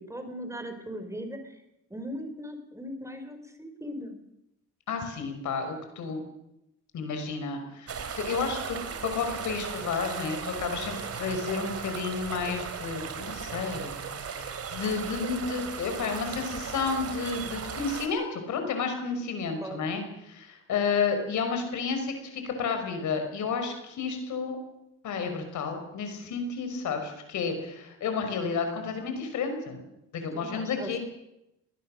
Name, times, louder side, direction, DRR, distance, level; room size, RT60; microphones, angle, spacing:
voice 1, 0.0-1.6 1.9-4.2 19.6-19.8 30.3-31.0, equal, 10° right, 7 dB, 4.3 m, -39 dB
voice 2, 4.9-6.2 6.9-13.9 14.2-24.6 25.0-29.8 30.1-31.0, left 5 dB, 75° left, 6 dB, 5.4 m, -31 dB
sound 1, 7.9-18.1, right 6 dB, 50° right, 3.2 m, -37 dB
21.0 x 20.0 x 6.5 m, 0.85 s
cardioid pair, 90°, 30 cm